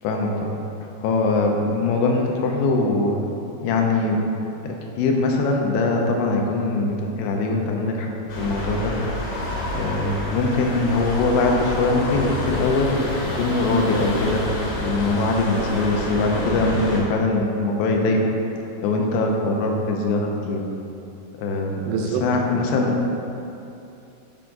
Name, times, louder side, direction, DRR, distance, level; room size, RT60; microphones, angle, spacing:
voice 1, 0.0-3.3 3.6-4.2 4.6-8.9 9.7-13.0 13.4-14.4 14.8-18.3 18.8-20.6 21.4-22.9, left 3 dB, 85° left, 1 dB, 2.6 m, -22 dB
sound 1, 8.3-17.0, left 1 dB, 70° left, 2.9 m, -28 dB
voice 2, 21.9-22.2 22.5-23.1, right 5 dB, 85° right, 3 dB, 2.4 m, -28 dB
10.5 x 4.6 x 2.6 m, 2.8 s
omnidirectional pair, 4.4 m